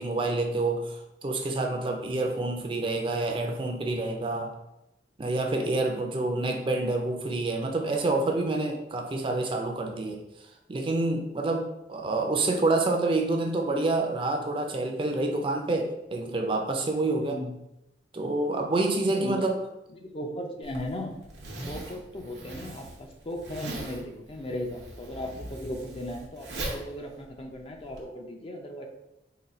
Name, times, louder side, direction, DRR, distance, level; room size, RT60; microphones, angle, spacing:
voice 1, 0.0-4.5 5.2-10.2 10.7-17.4 18.1-19.6, right 2 dB, 30° right, 2 dB, 0.5 m, -27 dB
voice 2, 17.2-17.5 19.1-19.4 19.9-21.1 21.7-28.9, left 1 dB, 30° left, 3 dB, 0.5 m, -37 dB
Zipper (clothing), 20.6-28.0, right 1 dB, 85° right, 0.9 m, -40 dB
3.9 x 2.3 x 4.1 m, 0.87 s
head